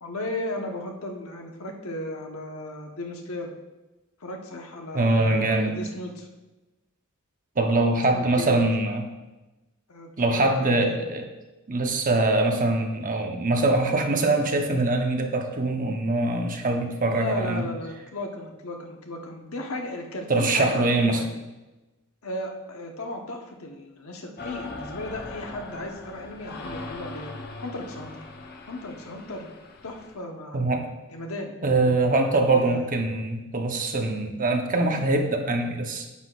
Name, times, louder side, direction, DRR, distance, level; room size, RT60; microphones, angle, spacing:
voice 1, 0.0-3.5 4.2-6.3 7.9-8.6 9.9-11.0 17.1-21.3 22.2-27.4 27.6-28.1 28.7-29.5 29.8-30.6 31.1-32.0 32.4-32.9, left 1 dB, 75° left, 2 dB, 1.2 m, -35 dB
voice 2, 4.9-5.7 7.6-9.0 10.2-11.2 11.7-17.7 20.3-21.2 30.5-30.9 31.6-36.1, right 2 dB, 40° right, 3 dB, 0.9 m, -23 dB
sound 1, 24.4-30.1, left 2 dB, 50° left, 0.9 m, -40 dB
9.6 x 8.0 x 2.5 m, 1.1 s
head